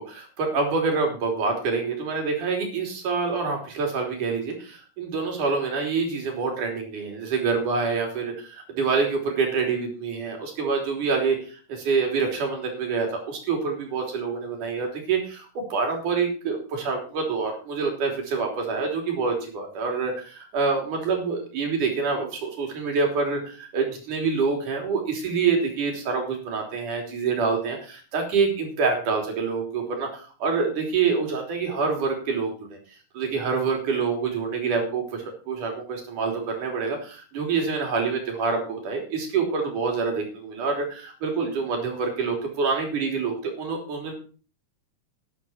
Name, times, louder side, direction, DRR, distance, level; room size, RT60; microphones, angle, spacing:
voice 1, 0.0-32.8 33.1-44.1, right 4 dB, 70° right, 2 dB, 4.9 m, -26 dB
12.0 x 11.5 x 4.5 m, 0.38 s
omnidirectional pair, 3.7 m